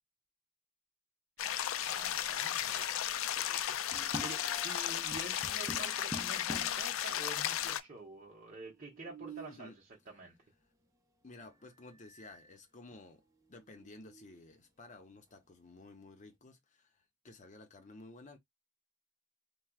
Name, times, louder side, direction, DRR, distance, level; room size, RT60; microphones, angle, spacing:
sound 1, 1.4-7.8, left 10 dB, 80° left, 0.4 m, -35 dB
voice 1, 1.8-2.9 3.4-10.3, right 3 dB, 40° right, 1.0 m, -49 dB
sound 2, 3.9-4.8 5.1-6.9 7.6-7.7 7.9-8.0 8.7-9.7 11.4-11.5 12.0-12.5 12.9-13.0 13.5-14.4, right 1 dB, 15° right, 0.7 m, -47 dB
voice 2, 11.2-13.2 13.5-18.4, left 2 dB, 35° left, 0.7 m, -54 dB
4.4 x 2.2 x 2.3 m
head